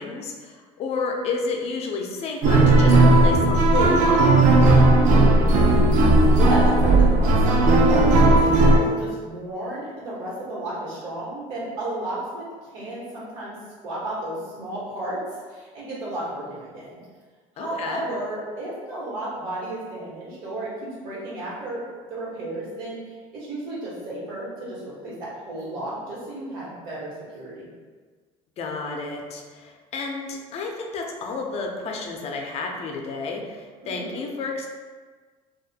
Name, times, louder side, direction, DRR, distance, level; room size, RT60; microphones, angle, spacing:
voice 1, 0.0-4.5 17.6-18.0 28.6-34.7, left 4 dB, 40° left, 2 dB, 0.4 m, -31 dB
sound 1, 2.4-8.8, right 2 dB, 50° right, 0.4 m, -16 dB
voice 2, 5.0-15.2 15.5-17.0 17.5-21.8 22.1-27.7 33.8-34.2, right 1 dB, 75° right, -7 dB, 1.1 m, -33 dB
2.3 x 2.1 x 2.7 m, 1.5 s
supercardioid pair, 105°, 16 cm